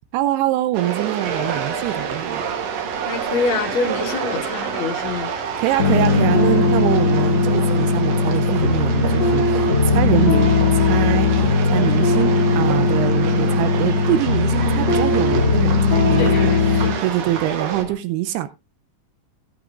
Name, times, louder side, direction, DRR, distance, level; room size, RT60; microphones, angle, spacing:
voice 1, 0.1-2.4 5.6-10.5 10.9-18.5, right 14 dB, 85° right, 2.7 m, -24 dB
sound 1, 0.7-17.8, right 7 dB, 70° right, 1.6 m, -29 dB
sound 2, 1.2-17.9, equal, 40° right, 4.8 m, -37 dB
voice 2, 3.0-5.3 16.2-16.9, left 4 dB, 60° left, 1.3 m, -25 dB
sound 3, 5.8-16.9, left 3 dB, 45° left, 1.5 m, -18 dB
17.0 x 8.8 x 2.4 m
omnidirectional pair, 4.6 m